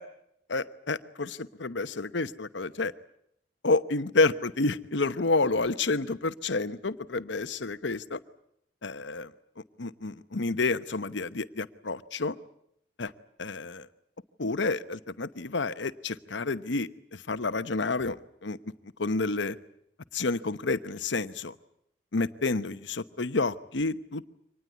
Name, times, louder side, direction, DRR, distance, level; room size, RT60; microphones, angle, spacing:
voice 1, 0.5-2.9 3.6-8.2 8.8-9.3 9.8-12.4 13.0-13.1 13.4-13.9 14.4-18.6 19.0-19.6 20.1-21.5 22.1-24.3, left 3 dB, 70° left, 12 dB, 1.0 m, -29 dB
25.0 x 19.5 x 9.5 m, 0.74 s
head